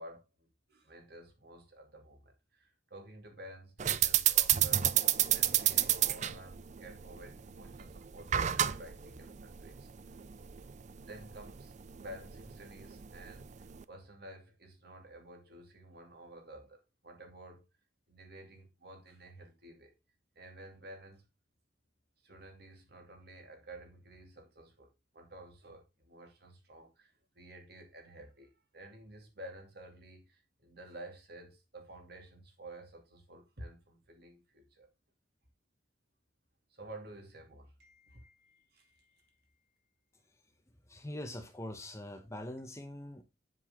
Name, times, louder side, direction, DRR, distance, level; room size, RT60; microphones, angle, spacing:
voice 1, 0.0-9.9 11.1-17.6 18.1-19.9 20.3-21.2 22.2-34.9 36.7-39.6, right 1 dB, 55° right, 2.5 m, -52 dB
sound 1, 3.8-13.8, right 11 dB, 35° right, 0.4 m, -31 dB
voice 2, 40.9-43.2, left 1 dB, 15° left, 0.9 m, -43 dB
7.9 x 7.5 x 3.6 m
head